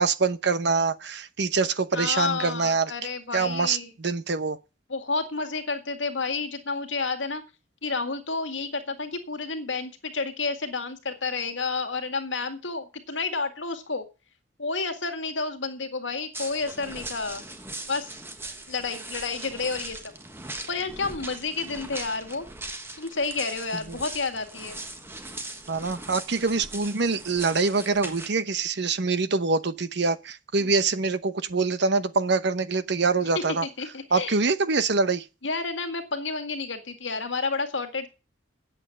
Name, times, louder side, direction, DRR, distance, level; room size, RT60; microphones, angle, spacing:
voice 1, 0.0-2.9 3.3-4.6 25.7-33.7 34.1-35.2, right 4 dB, 65° right, 0.9 m, -25 dB
voice 2, 1.9-3.9 4.9-7.4 7.8-14.1 14.6-17.4 17.9-18.1 18.7-20.0 20.7-22.5 23.0-24.8 30.6-30.7 33.3-34.4 35.4-38.1, left 4 dB, 80° left, 2.0 m, -30 dB
sound 1, 16.3-28.3, right 2 dB, 15° right, 1.4 m, -40 dB
9.0 x 7.8 x 8.5 m
head